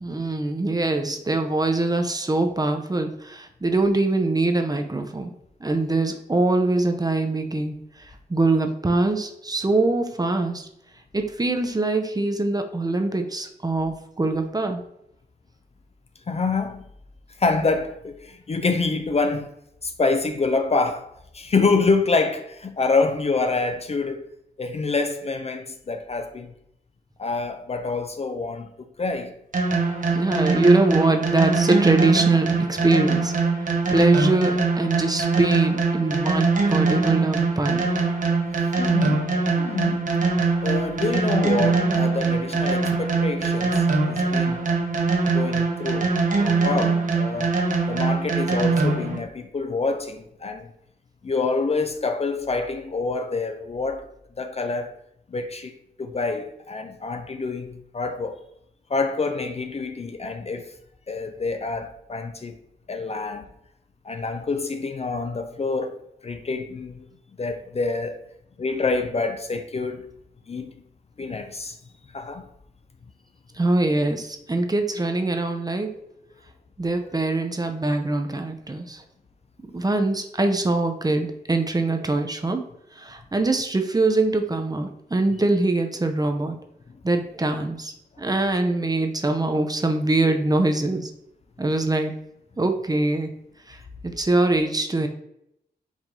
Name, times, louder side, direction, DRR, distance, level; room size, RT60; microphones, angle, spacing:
voice 1, 0.0-5.3 5.6-10.7 11.1-14.8 30.1-37.9 73.5-75.9 76.8-79.0 79.7-82.6 82.9-86.6 87.0-91.1 91.6-92.1 92.6-93.3 93.7-95.1, right 2 dB, 20° right, 0.6 m, -23 dB
voice 2, 16.3-16.9 17.4-19.5 19.8-24.2 24.6-26.5 27.2-29.3 38.8-40.2 40.6-44.7 45.3-47.6 47.9-50.7 51.2-54.1 54.4-54.9 55.3-58.4 58.9-60.7 61.1-62.6 62.9-63.5 64.0-67.1 67.4-68.2 68.6-70.1 70.5-70.7 71.2-71.8 72.1-72.5 77.0-77.1 86.9-87.0, left 3 dB, 35° left, 0.5 m, -27 dB
sound 1, 29.5-49.2, right 4 dB, 50° right, 0.9 m, -22 dB
4.9 x 2.6 x 3.6 m
cardioid pair, 55°, 18 cm